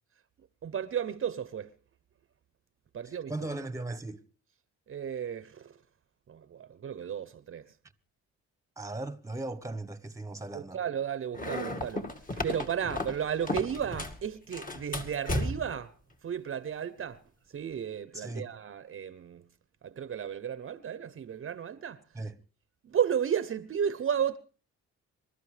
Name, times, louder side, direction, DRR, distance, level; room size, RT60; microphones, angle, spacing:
voice 1, 0.6-1.7 2.9-3.3 4.9-5.8 6.3-7.7 10.5-15.9 16.2-17.2 17.5-19.5 19.8-22.0 22.8-24.4, right 8 dB, 45° right, 0.8 m, -33 dB
voice 2, 3.0-4.2 8.8-10.8 18.1-18.5 22.1-22.4, right 2 dB, 10° right, 1.2 m, -38 dB
sound 1, 11.3-14.2 14.5-15.8, left 1 dB, 25° left, 2.0 m, -34 dB
26.0 x 13.0 x 3.3 m
cardioid pair, 90°, 30 cm